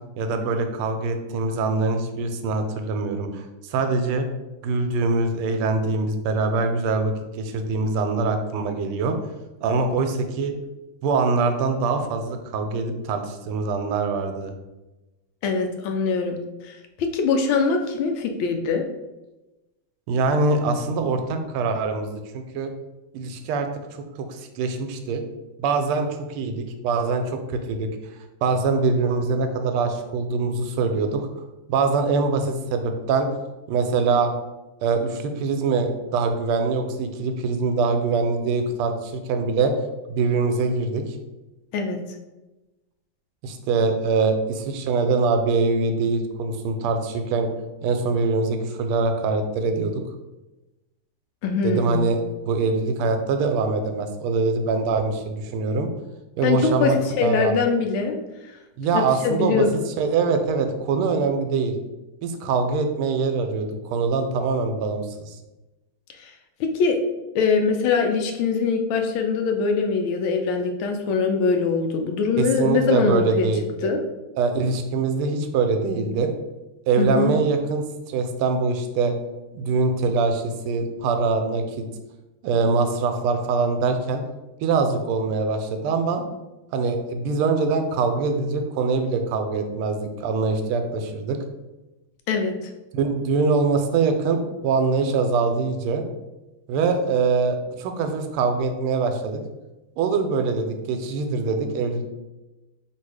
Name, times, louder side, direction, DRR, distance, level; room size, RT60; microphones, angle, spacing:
voice 1, 0.2-4.3 4.6-9.2 9.6-10.5 11.0-14.5 20.1-22.7 23.1-23.7 24.2-25.2 25.6-27.9 28.4-31.2 31.7-33.3 33.7-34.3 34.8-39.7 40.1-41.2 43.4-47.5 47.8-50.0 51.6-55.9 56.4-57.5 58.8-61.7 62.2-65.4 72.4-73.9 74.4-76.3 76.9-79.1 79.5-81.9 82.4-84.2 84.6-86.2 86.7-91.4 92.9-96.0 96.7-99.4 100.0-102.0, right 4 dB, 85° right, 6 dB, 1.5 m, -23 dB
voice 2, 15.4-16.4 16.6-18.9 41.7-42.0 51.4-52.1 56.4-58.2 58.5-58.6 58.9-59.9 66.2-66.3 66.6-67.0 67.3-73.5 73.8-74.0 77.0-77.3 92.3-92.7, left 5 dB, 75° left, 4 dB, 1.3 m, -23 dB
3.4 x 2.7 x 4.6 m, 1.1 s
omnidirectional pair, 2.3 m